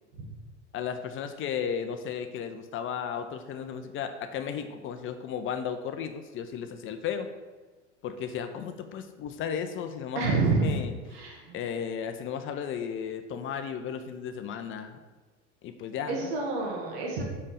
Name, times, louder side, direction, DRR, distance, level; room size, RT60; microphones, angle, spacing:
voice 1, 0.7-7.3 8.0-10.9 11.5-15.0 15.6-16.3, left 7 dB, 35° left, 8 dB, 0.7 m, -34 dB
voice 2, 10.2-10.8 11.1-11.5 16.1-17.2, right 3 dB, 60° right, -1 dB, 1.9 m, -28 dB
5.4 x 5.4 x 6.5 m, 1.3 s
figure-of-eight pair, 70°, 36 cm